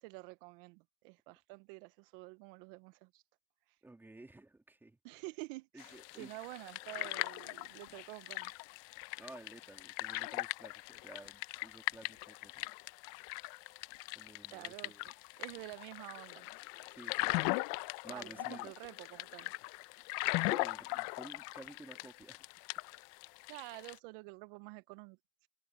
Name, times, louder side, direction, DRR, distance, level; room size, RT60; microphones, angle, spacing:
voice 1, 0.0-3.2 3.7-3.8 5.0-8.5 14.5-15.1 15.4-16.5 18.1-19.5 23.5-25.5, right 24 dB, 55° right, 0.7 m, -49 dB
voice 2, 3.8-5.0 5.7-6.3 9.2-12.6 14.1-15.1 16.9-17.5 18.0-18.7 20.3-22.4, right 2 dB, 5° right, 2.9 m, -53 dB
sound 1, 5.8-24.0, left 25 dB, 50° left, 0.7 m, -40 dB
supercardioid pair, 130°, 33 cm